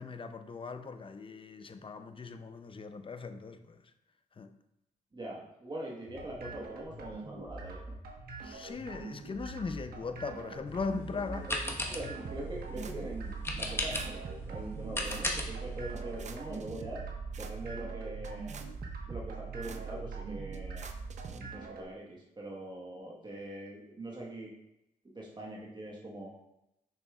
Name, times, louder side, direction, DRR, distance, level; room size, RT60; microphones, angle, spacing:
voice 1, 0.0-3.8 4.4-4.5 8.4-11.5, left 4 dB, 35° left, 0.6 m, -39 dB
voice 2, 5.1-7.9 11.3-11.6 11.9-14.2 14.4-17.0 17.4-18.6 19.1-20.9 21.3-24.5 25.1-26.3, right 1 dB, 30° right, 1.4 m, -43 dB
sound 1, 6.1-21.9, right 3 dB, 75° right, 1.3 m, -45 dB
sound 2, 10.7-16.3, left 1 dB, 15° left, 1.2 m, -38 dB
sound 3, 12.2-21.4, right 6 dB, 50° right, 0.6 m, -42 dB
6.6 x 5.9 x 2.4 m
supercardioid pair, 60°, 15 cm